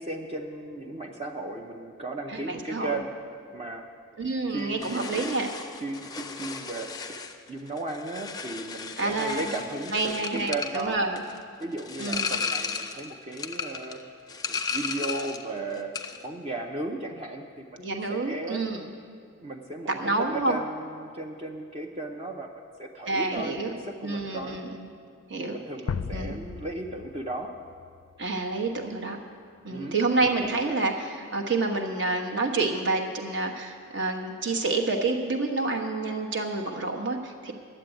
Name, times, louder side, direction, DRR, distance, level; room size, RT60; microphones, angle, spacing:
voice 1, 0.0-3.1 3.5-3.9 4.5-5.3 5.8-6.9 7.5-11.0 11.6-14.0 14.5-17.8 18.1-18.6 19.4-22.5 22.8-24.6 25.4-27.5 29.7-30.0, right 2 dB, 30° right, 2 dB, 0.6 m, -35 dB
voice 2, 2.3-3.0 4.2-5.5 9.0-9.5 9.9-11.2 12.0-12.4 17.8-18.9 20.0-20.6 23.1-23.7 24.0-24.8 25.3-25.6 26.1-26.4 28.2-29.2 29.6-37.5, right 3 dB, 55° right, 3 dB, 1.2 m, -28 dB
sound 1, 4.8-15.5 15.8-16.3, left 5 dB, 20° left, 0.5 m, -35 dB
sound 2, 25.9-28.8, left 5 dB, 85° left, 0.4 m, -36 dB
11.0 x 7.6 x 9.0 m, 2.2 s
head